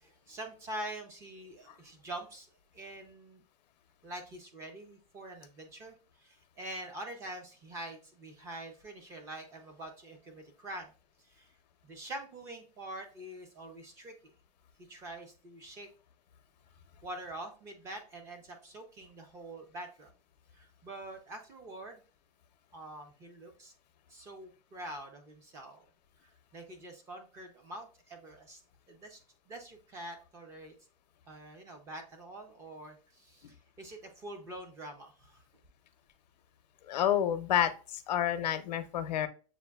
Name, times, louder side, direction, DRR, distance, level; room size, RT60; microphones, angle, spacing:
voice 1, 0.0-2.5 2.7-3.4 4.0-10.9 11.2-11.5 11.8-14.3 14.9-15.9 17.0-20.1 20.5-22.0 22.7-23.7 24.1-25.9 26.5-28.6 28.9-29.2 29.5-30.7 31.3-35.4, right 1 dB, 15° right, 5 dB, 0.4 m, -45 dB
voice 2, 36.9-39.3, left 10 dB, 85° left, 11 dB, 0.6 m, -29 dB
6.9 x 2.5 x 2.2 m, 0.36 s
supercardioid pair, 170°, 21 cm